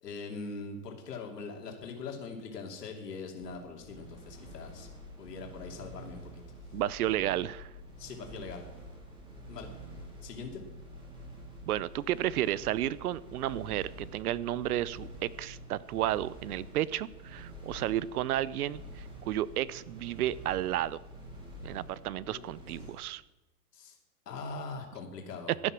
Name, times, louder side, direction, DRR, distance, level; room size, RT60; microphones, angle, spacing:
voice 1, 0.0-4.9 5.2-6.4 8.0-8.6 9.5-9.7 10.2-10.6 22.2-22.5 22.8-22.9 23.7-24.0 24.3-25.5, left 4 dB, 90° left, 1 dB, 2.9 m, -42 dB
sound 1, 3.4-22.9, right 1 dB, 10° right, 3.4 m, -48 dB
voice 2, 6.7-7.7 11.7-18.8 19.3-21.0 21.6-23.2, right 13 dB, 70° right, 20 dB, 0.7 m, -32 dB
15.0 x 10.0 x 6.2 m, 1.0 s
hypercardioid pair, 155°, 47 cm